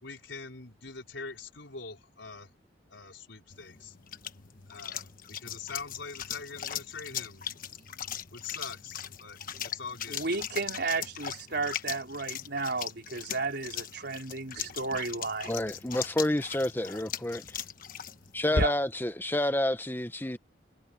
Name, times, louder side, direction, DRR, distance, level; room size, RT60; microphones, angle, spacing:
voice 1, 0.0-2.5 2.9-4.0 4.7-7.5 8.3-10.3, left 4 dB, 75° left, 4.6 m, -43 dB
sound 1, 3.5-19.1, left 6 dB, 50° left, 1.2 m, -39 dB
voice 2, 10.1-15.5 18.5-18.7, right 3 dB, 60° right, 4.2 m, -33 dB
voice 3, 15.5-17.4 18.3-20.4, left 1 dB, 10° left, 1.1 m, -29 dB
head